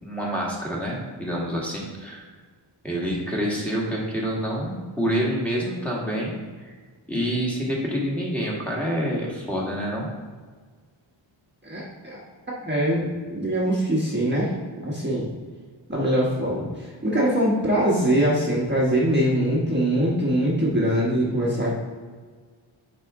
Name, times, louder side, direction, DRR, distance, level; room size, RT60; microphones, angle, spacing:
voice 1, 0.0-2.2 2.8-6.7 7.1-10.1, equal, 5° left, -5 dB, 1.6 m, -27 dB
voice 2, 11.6-12.2 12.6-14.5 14.8-15.3 15.9-21.7, right 1 dB, 20° right, -5 dB, 1.2 m, -23 dB
8.5 x 4.2 x 3.7 m, 1.5 s
wide cardioid pair, 95°, 49 cm